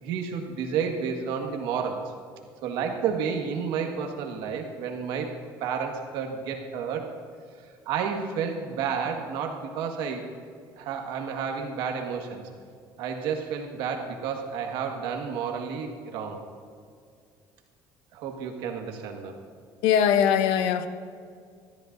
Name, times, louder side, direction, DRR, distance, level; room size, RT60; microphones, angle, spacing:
voice 1, 0.0-2.1 2.6-5.3 5.6-7.1 7.9-10.2 10.8-12.4 13.0-16.4 18.1-19.3, right 6 dB, 75° right, 1.7 m, -31 dB
voice 2, 19.8-20.9, left 8 dB, 80° left, 0.8 m, -21 dB
20.5 x 13.5 x 2.6 m
cardioid pair, 140°, 8 cm